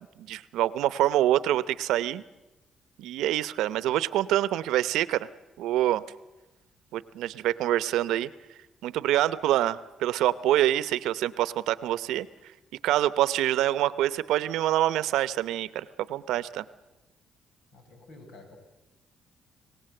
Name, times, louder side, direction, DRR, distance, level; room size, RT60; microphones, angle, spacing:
voice 1, 0.2-2.2 3.0-5.3 5.6-6.0 6.9-8.3 8.8-12.3 12.8-16.6, right 13 dB, 90° right, 16 dB, 0.8 m, -26 dB
voice 2, 17.7-18.6, left 2 dB, 80° left, 4 dB, 5.9 m, -49 dB
26.5 x 17.5 x 7.8 m, 1.1 s
cardioid pair, 90°, 0 cm